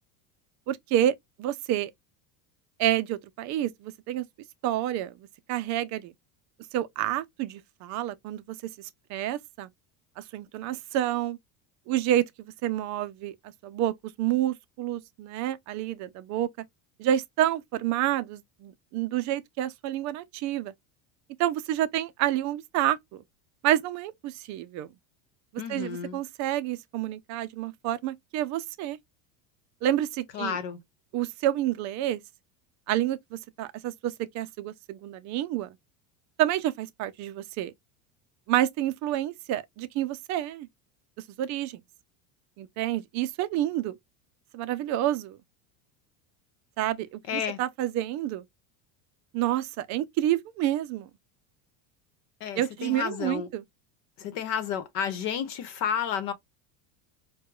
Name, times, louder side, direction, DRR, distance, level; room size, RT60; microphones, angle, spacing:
voice 1, 0.7-1.9 2.8-4.2 4.6-6.1 6.7-8.6 9.1-9.7 10.2-11.4 11.9-13.3 13.6-13.9 14.2-16.5 17.0-20.7 21.4-23.2 23.6-24.9 25.7-29.0 29.8-30.6 31.1-32.2 32.9-35.8 36.4-37.7 38.5-40.7 41.4-41.8 42.6-43.9 44.5-45.4 46.8-48.4 49.3-51.1 52.6-53.6, right 12 dB, 40° right, 0.4 m, -29 dB
voice 2, 25.6-26.2 30.3-30.8 47.3-47.6 52.4-53.5 54.2-56.3, left 8 dB, 60° left, 1.0 m, -31 dB
4.6 x 2.3 x 2.3 m
supercardioid pair, 145°, 48 cm